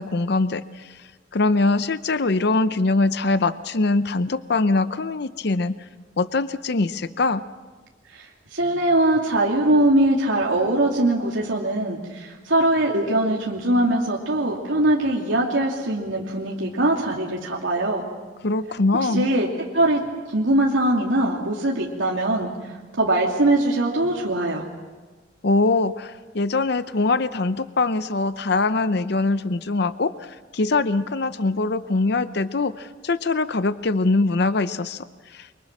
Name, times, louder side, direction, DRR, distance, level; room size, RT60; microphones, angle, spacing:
voice 1, 0.0-5.9 6.2-7.4 18.4-19.3 25.4-35.5, left 3 dB, 55° left, 13 dB, 0.7 m, -23 dB
voice 2, 8.1-18.0 19.1-19.5 19.7-22.5 23.0-24.6, right 1 dB, 85° right, -2 dB, 2.6 m, -21 dB
29.0 x 24.5 x 6.0 m, 1.3 s
head